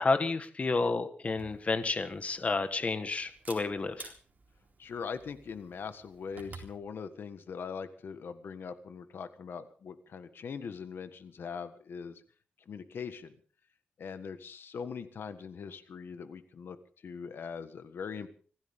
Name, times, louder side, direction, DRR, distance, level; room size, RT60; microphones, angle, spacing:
voice 1, 0.0-4.1, left 3 dB, 40° left, 10 dB, 1.4 m, -30 dB
Camera, 1.2-6.8, right 4 dB, 50° right, 4.0 m, -52 dB
voice 2, 4.8-12.2 12.7-13.3 14.0-16.8 17.0-18.3, left 6 dB, 85° left, 10 dB, 1.6 m, -41 dB
25.0 x 15.5 x 3.7 m, 0.41 s
wide cardioid pair, 130°, 4 cm